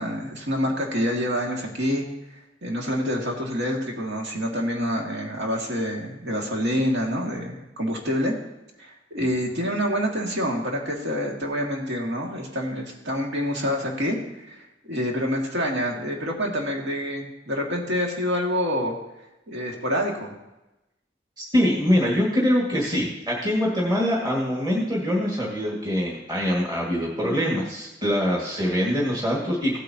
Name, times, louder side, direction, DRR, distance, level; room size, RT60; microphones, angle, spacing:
voice 1, 0.0-2.1 2.6-8.4 8.8-18.9 19.5-20.3, equal, 75° right, 0 dB, 2.2 m, -27 dB
voice 2, 21.4-29.8, equal, 25° right, -4 dB, 2.0 m, -24 dB
16.5 x 8.4 x 2.9 m, 0.96 s
head